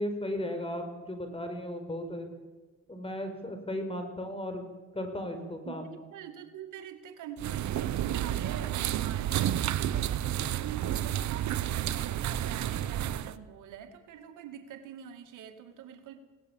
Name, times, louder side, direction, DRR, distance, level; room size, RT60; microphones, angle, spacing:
voice 1, 0.0-2.3 2.9-4.6 4.9-6.0, left 1 dB, 20° left, 6 dB, 5.2 m, -35 dB
voice 2, 5.7-16.2, right 10 dB, 85° right, 7 dB, 2.3 m, -45 dB
sound 1, 7.4-13.3, right 11 dB, 70° right, 1.0 m, -30 dB
22.0 x 17.5 x 7.3 m, 1.3 s
cardioid pair, 90°, 30 cm